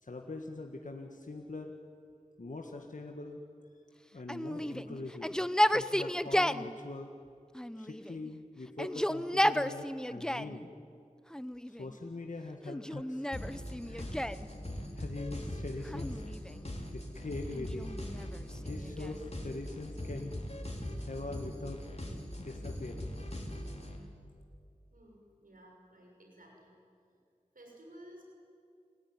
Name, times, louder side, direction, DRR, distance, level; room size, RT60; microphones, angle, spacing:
voice 1, 0.0-1.7 2.4-3.4 4.1-5.4 5.7-7.1 7.8-10.7 11.7-13.3 13.9-14.2 15.0-16.2 16.9-18.0 18.5-20.3 21.1-21.8 22.4-23.2, left 2 dB, 70° left, 2 dB, 1.8 m, -42 dB
Yell, 4.3-6.7 7.6-8.3 8.7-10.6 11.3-12.0 12.7-14.5 15.8-16.7 17.5-19.3, equal, 5° left, 0.8 m, -33 dB
sound 1, 13.3-24.0, left 1 dB, 50° left, 4.1 m, -41 dB
voice 2, 24.9-26.7 27.5-28.2, right 1 dB, 85° right, 0 dB, 6.1 m, -55 dB
29.5 x 19.5 x 9.8 m, 2.3 s
wide cardioid pair, 45°, 14 cm